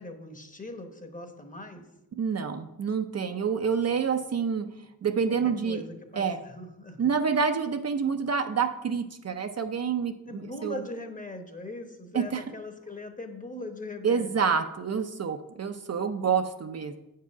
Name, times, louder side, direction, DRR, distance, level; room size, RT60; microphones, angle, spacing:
voice 1, 0.0-1.8 5.4-7.0 10.3-14.3, left 2 dB, 20° left, 6 dB, 1.0 m, -40 dB
voice 2, 2.2-4.7 5.0-5.8 6.1-6.4 7.0-10.8 12.1-12.4 14.0-17.0, right 6 dB, 45° right, 7 dB, 0.5 m, -28 dB
8.0 x 4.7 x 5.9 m, 0.93 s
wide cardioid pair, 120°, 37 cm